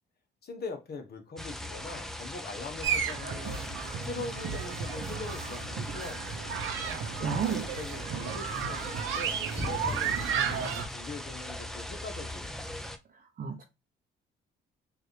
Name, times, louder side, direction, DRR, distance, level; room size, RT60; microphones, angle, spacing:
voice 1, 0.4-3.6 4.0-6.3 7.2-12.6, left 3 dB, 55° left, 1.2 m, -42 dB
sound 1, 1.4-13.0, left 1 dB, ahead, 0.5 m, -39 dB
sound 2, 2.8-10.9, right 7 dB, 85° right, 0.7 m, -33 dB
voice 2, 7.1-7.6 13.4-13.6, right 6 dB, 45° right, 0.6 m, -31 dB
4.6 x 2.6 x 3.1 m
cardioid pair, 90°, 20 cm